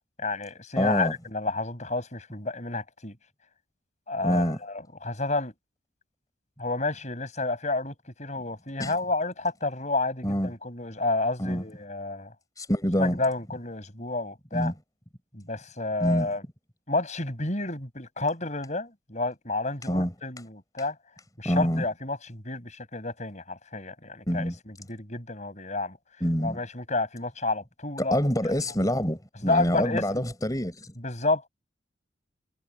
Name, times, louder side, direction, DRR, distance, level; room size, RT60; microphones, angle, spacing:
voice 1, 0.2-3.2 4.1-5.5 6.6-12.3 13.0-14.7 15.3-16.4 16.9-21.0 21.4-26.0 26.4-28.2 28.5-28.6 29.4-30.3 31.0-31.5, left 2 dB, 40° left, 7.0 m, -30 dB
voice 2, 0.8-1.1 4.2-4.6 8.8-8.9 10.2-10.5 11.4-11.6 12.6-13.2 14.5-14.7 16.0-16.3 19.9-20.1 21.4-21.8 24.3-24.5 26.2-26.6 28.0-30.9, equal, 20° left, 5.4 m, -26 dB
head